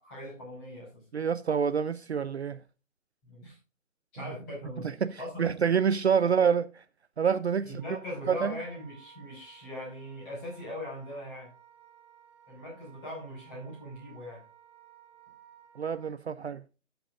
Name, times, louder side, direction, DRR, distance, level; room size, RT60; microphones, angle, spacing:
voice 1, 0.0-1.0 3.3-3.6 4.1-4.9 5.2-5.5 6.2-6.3 7.6-11.5 12.5-14.4, left 1 dB, 15° left, 5.4 m, -40 dB
voice 2, 1.1-2.6 4.8-6.8 7.2-8.0 8.3-8.5 15.8-16.6, right 7 dB, 55° right, 0.6 m, -27 dB
Wind instrument woodwind instrument, 7.8-16.1, right 10 dB, 25° right, 4.5 m, -57 dB
18.0 x 7.9 x 2.5 m
hypercardioid pair, 175°, 40 cm